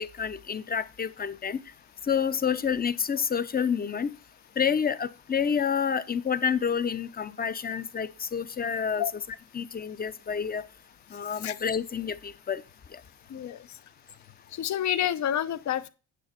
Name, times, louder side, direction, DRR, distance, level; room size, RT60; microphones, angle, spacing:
voice 1, 0.0-1.6 2.1-4.1 4.6-9.0 9.5-10.6 11.1-12.6, left 7 dB, 25° left, 0.8 m, -28 dB
voice 2, 13.3-13.7 14.5-15.9, left 11 dB, 55° left, 0.9 m, -28 dB
9.3 x 6.9 x 4.3 m
cardioid pair, 110°, 34 cm